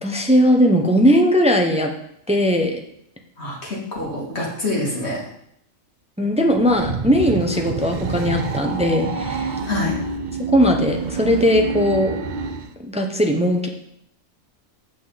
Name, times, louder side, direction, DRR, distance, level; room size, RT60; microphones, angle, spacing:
voice 1, 0.0-1.9 2.3-2.8 6.2-9.5 10.5-12.1 12.8-13.7, equal, 5° right, 3 dB, 0.7 m, -18 dB
voice 2, 3.4-5.2 9.7-9.9, left 2 dB, 50° left, -5 dB, 2.9 m, -26 dB
sound 1, 6.5-12.7, right 4 dB, 55° right, 0.5 m, -27 dB
8.4 x 7.5 x 4.1 m, 0.73 s
omnidirectional pair, 1.5 m